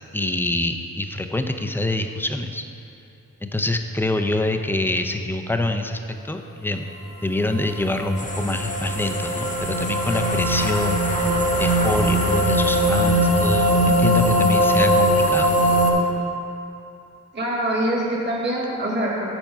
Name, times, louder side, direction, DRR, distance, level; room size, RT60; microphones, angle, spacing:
voice 1, 0.1-2.6 3.4-6.8 7.2-11.3 11.6-15.6, left 1 dB, 5° left, 6 dB, 0.5 m, -25 dB
sound 1, 7.4-15.9, equal, 40° left, 1.4 m, -20 dB
sound 2, 8.2-13.5, left 1 dB, 25° left, 0.9 m, -34 dB
voice 2, 17.3-19.3, right 1 dB, 35° right, -3 dB, 1.4 m, -24 dB
7.0 x 4.4 x 5.5 m, 2.7 s
cardioid pair, 40°, 33 cm